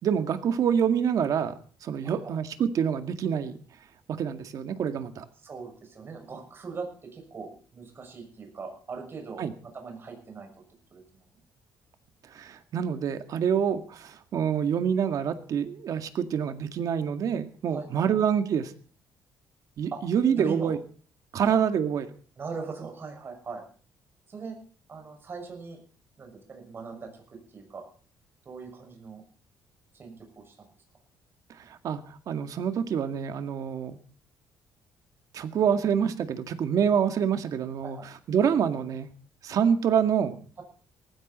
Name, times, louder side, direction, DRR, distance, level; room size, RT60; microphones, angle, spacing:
voice 1, 0.0-1.5 1.8-3.5 4.1-5.3 9.4-9.5 12.3-18.7 19.8-20.8 21.3-22.1 31.8-32.0 32.3-34.0 35.3-38.0 38.3-39.1 39.4-40.4, right 8 dB, 55° right, 8 dB, 2.0 m, -26 dB
voice 2, 2.0-2.3 5.4-9.4 9.7-10.5 10.9-11.2 17.7-18.1 19.9-20.0 20.3-20.7 21.4-21.5 22.4-23.6 24.3-24.6 24.9-25.8 26.2-27.2 27.5-27.9 28.4-29.2 29.9-30.7 37.8-38.1, right 4 dB, 30° right, 3 dB, 6.3 m, -40 dB
18.5 x 15.5 x 4.3 m, 0.42 s
cardioid pair, 150°, 7 cm